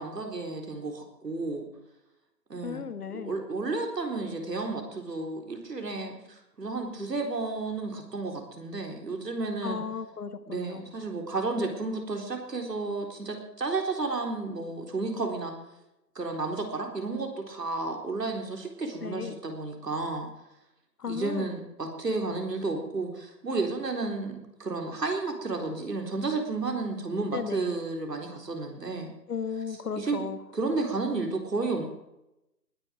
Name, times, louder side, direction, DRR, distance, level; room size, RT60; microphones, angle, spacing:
voice 1, 0.0-1.7 2.5-2.9 3.1-9.8 10.5-15.5 16.2-20.3 21.1-29.1 30.0-30.2 30.5-31.8, right 3 dB, 75° right, 3 dB, 4.2 m, -32 dB
voice 2, 2.6-3.4 9.6-10.8 19.0-19.4 21.0-21.5 27.3-27.8 29.3-30.4, left 6 dB, 65° left, 11 dB, 1.5 m, -35 dB
20.0 x 10.0 x 4.7 m, 0.88 s
figure-of-eight pair, 150°, 49 cm